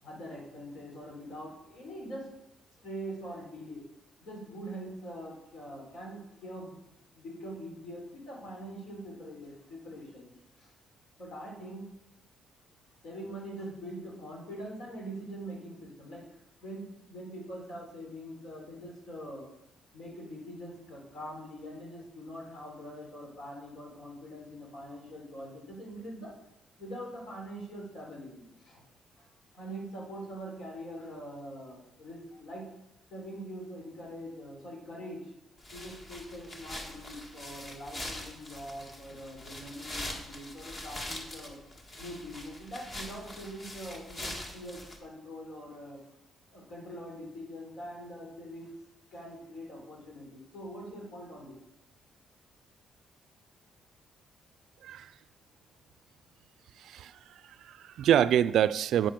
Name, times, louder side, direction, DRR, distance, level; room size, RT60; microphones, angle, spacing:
voice 1, 0.0-2.3 2.8-3.8 4.2-6.8 7.1-10.3 10.6-10.7 11.2-11.8 13.0-16.2 16.6-19.5 19.9-26.3 26.8-28.8 29.2-29.3 29.5-32.7 33.1-35.3 35.7-41.6 42.0-46.0 46.5-48.7 49.1-51.6, equal, 70° left, -1 dB, 4.2 m, -43 dB
sound 1, 35.6-45.0, left 1 dB, 35° left, 1.9 m, -43 dB
voice 2, 56.8-57.2 57.6-59.1, right 10 dB, 75° right, 16 dB, 0.4 m, -26 dB
9.3 x 7.6 x 5.2 m, 0.90 s
cardioid pair, 90°, 0 cm